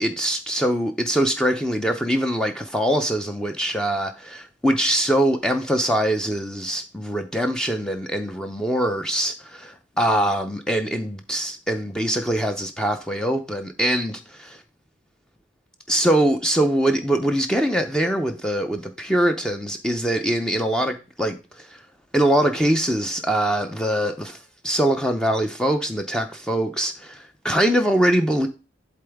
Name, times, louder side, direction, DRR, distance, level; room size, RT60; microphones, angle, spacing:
voice 1, 0.0-14.6 15.9-21.8 22.1-24.4 24.6-28.5, right 1 dB, 5° left, 0.5 m, -23 dB
11.5 x 3.8 x 3.5 m
head